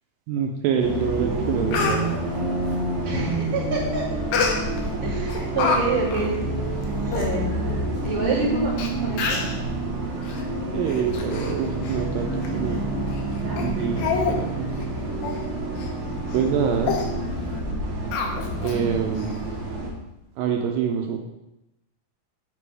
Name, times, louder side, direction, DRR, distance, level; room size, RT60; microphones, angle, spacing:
voice 1, 0.3-2.2 10.7-12.8 13.6-14.7 16.3-17.0 18.6-19.4 20.4-21.2, right 7 dB, 80° right, 2 dB, 2.2 m, -26 dB
Bus, 0.8-19.9, right 1 dB, 55° right, 2.0 m, -28 dB
Speech, 1.0-1.1 1.5-2.0 4.3-4.9 5.3-5.8 6.1-6.3 6.8-6.9 7.1-7.3 8.1-8.2 8.8-8.9 9.2-9.6 10.2-10.4 10.9-11.5 11.8-12.0 12.4-12.5 13.1-13.2 13.6-13.7 14.0-14.4 14.7-14.8 15.2-15.4 15.8-15.9 16.3-16.5 16.8-17.1 18.1-18.8 19.2-19.3, left 5 dB, 75° left, 2.4 m, -27 dB
voice 2, 3.0-4.0 5.0-6.3 7.1-7.5 8.0-9.5, right 3 dB, 25° right, -9 dB, 1.6 m, -27 dB
7.5 x 5.0 x 3.3 m, 0.93 s
omnidirectional pair, 4.2 m